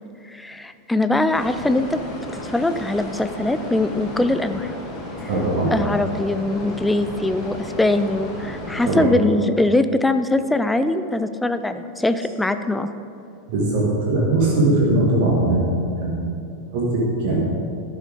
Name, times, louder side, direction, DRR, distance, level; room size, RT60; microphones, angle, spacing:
voice 1, 0.3-2.0 2.4-4.7 5.7-12.9, left 2 dB, 5° left, 10 dB, 0.4 m, -22 dB
sound 1, 1.3-9.0, left 1 dB, 25° left, 2.3 m, -34 dB
voice 2, 5.3-5.7 8.9-9.1 13.5-15.7 16.0-16.1 16.7-17.4, right 2 dB, 50° right, -4 dB, 1.7 m, -20 dB
11.5 x 6.5 x 5.1 m, 2.7 s
figure-of-eight pair, 90°, 0 cm